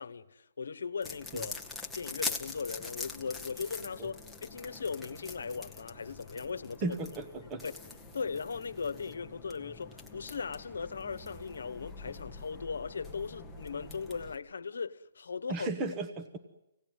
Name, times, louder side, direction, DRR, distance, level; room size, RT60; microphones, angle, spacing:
voice 1, 0.0-1.5 2.0-7.0 7.6-7.7 8.1-15.7, left 5 dB, 85° left, 1.0 m, -38 dB
sound 1, 1.0-14.4, left 3 dB, 5° left, 1.0 m, -44 dB
voice 2, 6.8-7.6 15.5-16.4, right 3 dB, 20° right, 1.0 m, -35 dB
25.5 x 18.0 x 9.4 m
hypercardioid pair, 165°, 0 cm